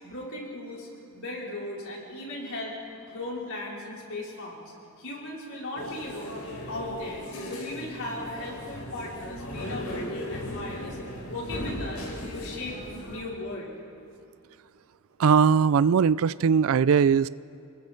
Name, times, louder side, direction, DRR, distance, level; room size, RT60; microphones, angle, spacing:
voice 1, 0.0-6.4 6.7-11.0 11.2-13.7, left 2 dB, 65° left, -4 dB, 4.9 m, -37 dB
sound 1, 5.7-13.2, left 1 dB, 80° left, 4.2 m, -37 dB
voice 2, 15.2-17.3, right 6 dB, 70° right, 19 dB, 0.4 m, -20 dB
29.0 x 21.0 x 4.5 m, 2.6 s
head